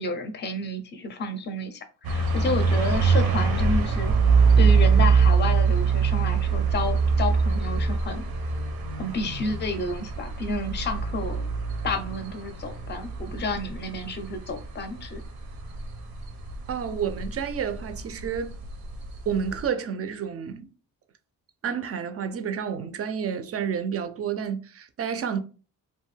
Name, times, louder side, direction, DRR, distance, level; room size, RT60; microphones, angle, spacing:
voice 1, 0.0-4.1 4.6-8.2 9.0-11.5 11.8-15.2, left 2 dB, 30° left, 0.5 m, -30 dB
sound 1, 2.0-19.7, right 5 dB, 80° right, 0.6 m, -24 dB
voice 2, 16.7-18.6 19.3-20.7 21.6-25.4, right 7 dB, 40° right, 0.4 m, -30 dB
2.5 x 2.2 x 3.1 m
cardioid pair, 100°, 36 cm